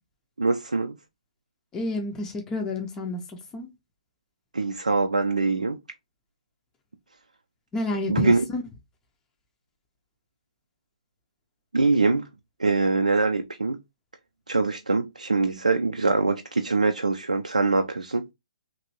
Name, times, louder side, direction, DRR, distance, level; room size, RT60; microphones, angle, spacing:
voice 1, 0.4-1.0 4.5-5.8 8.1-8.4 11.7-12.2 12.6-13.8 14.5-18.3, right 3 dB, 85° right, 0.3 m, -23 dB
voice 2, 1.7-3.7 7.7-8.6, left 2 dB, 15° left, 0.5 m, -30 dB
2.9 x 2.5 x 2.9 m
figure-of-eight pair, 130°, 4 cm